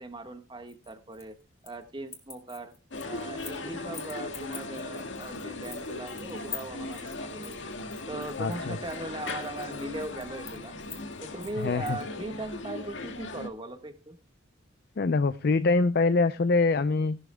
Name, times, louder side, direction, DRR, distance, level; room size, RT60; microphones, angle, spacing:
voice 1, 0.0-1.4 1.6-2.7 3.0-7.5 8.1-10.7 11.2-14.2, right 2 dB, 25° right, 7 dB, 1.5 m, -39 dB
sound 1, 0.7-1.8 2.1-3.6 3.9-12.0, left 6 dB, 15° left, 2.3 m, -46 dB
sound 2, 2.9-13.5, left 2 dB, 75° left, 1.9 m, -38 dB
voice 2, 8.4-8.8 11.6-12.0 15.0-17.2, left 3 dB, 55° left, 13 dB, 0.5 m, -24 dB
17.5 x 12.0 x 2.2 m, 0.30 s
head